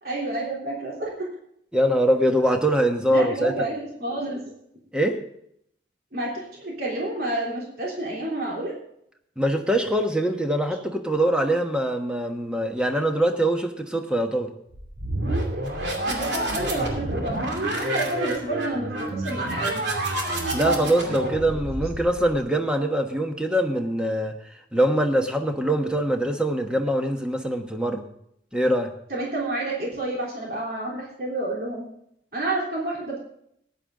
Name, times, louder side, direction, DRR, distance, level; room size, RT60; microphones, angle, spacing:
voice 1, 0.0-1.1 3.1-4.5 6.1-8.7 16.1-19.8 29.1-31.9 32.3-33.2, right 2 dB, 55° right, -3 dB, 3.4 m, -29 dB
voice 2, 1.7-3.7 4.9-5.2 9.4-14.5 20.5-24.3 24.7-28.0 28.5-28.9, right 1 dB, 5° right, 4 dB, 1.2 m, -23 dB
sound 1, 14.7-22.4, right 1 dB, 80° right, 2.7 m, -28 dB
15.0 x 10.5 x 3.8 m, 0.72 s
head